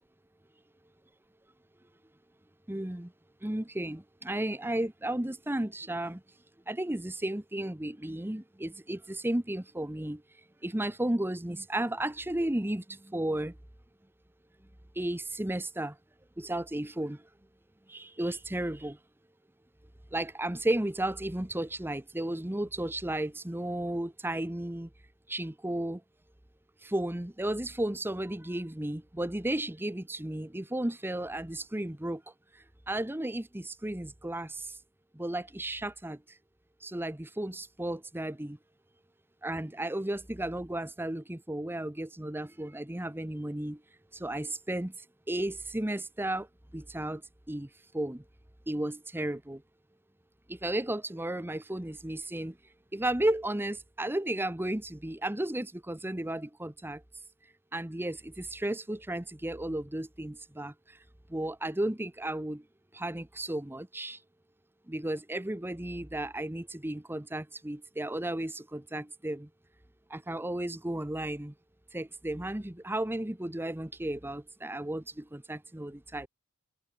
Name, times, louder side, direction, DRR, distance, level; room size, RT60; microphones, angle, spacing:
voice 1, 2.7-3.1 3.4-6.2 6.7-10.2 10.6-13.5 15.0-16.0 16.4-17.2 17.9-19.0 20.1-24.9 25.3-26.0 26.8-32.2 32.9-34.7 35.1-36.2 36.8-38.6 39.4-43.8 44.1-44.9 45.3-46.5 46.7-47.2 47.5-47.7 47.9-48.2 48.7-49.6 50.5-52.5 52.9-57.0 57.7-61.0 61.3-62.6 62.9-64.2 64.9-69.5 70.1-71.5 71.9-76.3, right 1 dB, 10° right, 0.9 m, -34 dB
head